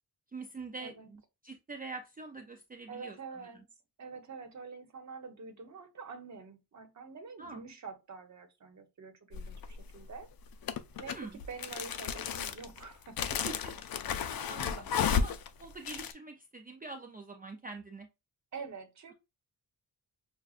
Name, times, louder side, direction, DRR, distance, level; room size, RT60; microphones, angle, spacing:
voice 1, 0.3-3.6 7.4-7.6 11.0-11.4 13.4-13.7 14.5-14.7 15.1-18.1, right 3 dB, 25° right, 0.4 m, -45 dB
voice 2, 2.9-3.7 4.0-10.3 11.0-13.7 14.2-14.8 18.5-19.1, right 5 dB, 45° right, 1.0 m, -47 dB
sound 1, 9.3-9.8 10.6-16.1, left 7 dB, 65° left, 0.5 m, -33 dB
6.2 x 2.3 x 2.4 m
wide cardioid pair, 170°, 38 cm